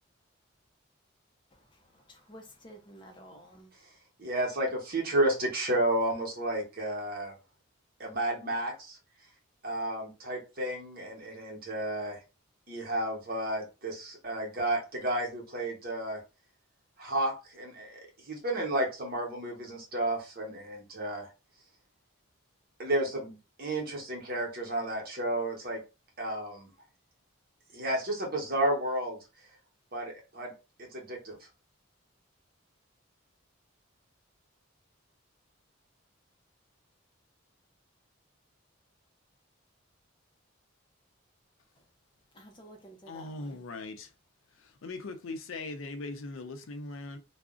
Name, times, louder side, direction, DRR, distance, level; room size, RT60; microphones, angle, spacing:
voice 1, 2.1-3.7 42.3-43.6, equal, 25° left, 0.4 m, -51 dB
voice 2, 4.2-7.3 8.0-9.0 9.6-12.2 12.7-16.2 17.0-21.3 22.8-25.8 26.2-26.7 27.7-29.2 29.9-30.5 30.8-31.4, right 1 dB, 45° right, 0.9 m, -32 dB
voice 3, 43.1-44.1 44.8-47.2, left 2 dB, 75° left, 0.5 m, -40 dB
2.4 x 2.0 x 3.6 m
head